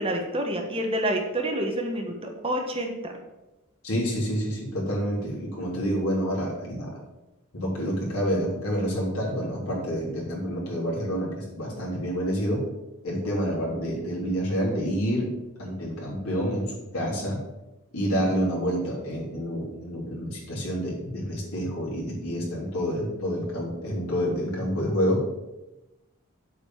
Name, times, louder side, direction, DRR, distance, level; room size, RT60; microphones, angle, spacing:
voice 1, 0.0-3.1, right 1 dB, 25° right, 2 dB, 1.3 m, -28 dB
voice 2, 3.8-7.0 7.5-12.7 13.0-15.3 15.6-17.4 17.9-25.2, equal, 85° left, -4 dB, 3.6 m, -28 dB
7.9 x 5.2 x 7.3 m, 0.99 s
head